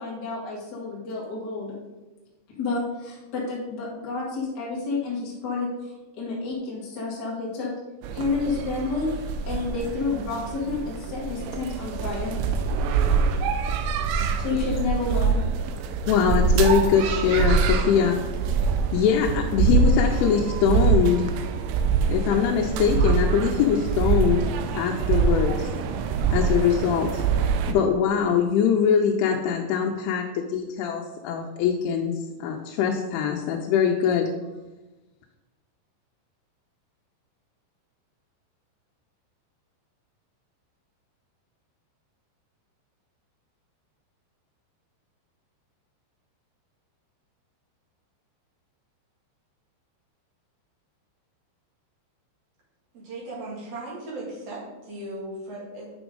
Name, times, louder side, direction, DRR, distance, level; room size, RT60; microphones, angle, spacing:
voice 1, 0.0-1.7 2.6-7.7 8.1-9.1 9.4-12.3 14.4-15.4, left 4 dB, 55° left, -5 dB, 1.1 m, -30 dB
sound 1, 8.0-27.7, right 5 dB, 80° right, 2.4 m, -24 dB
voice 2, 16.1-18.2 18.9-21.3 22.1-25.7 26.3-27.2 27.7-32.1 32.4-34.3, left 7 dB, 90° left, 1 dB, 3.1 m, -22 dB
voice 3, 52.9-55.9, right 2 dB, 45° right, -5 dB, 2.5 m, -37 dB
8.5 x 6.1 x 3.8 m, 1.1 s
omnidirectional pair, 5.4 m